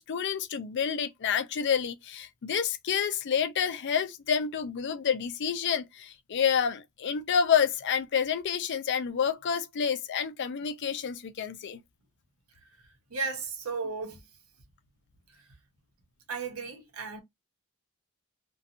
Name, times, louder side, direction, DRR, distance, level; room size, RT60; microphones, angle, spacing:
voice 1, 0.0-11.8, left 7 dB, 55° left, 0.4 m, -29 dB
voice 2, 13.1-14.2 16.3-17.2, right 4 dB, 80° right, 0.8 m, -34 dB
2.5 x 2.2 x 2.7 m
head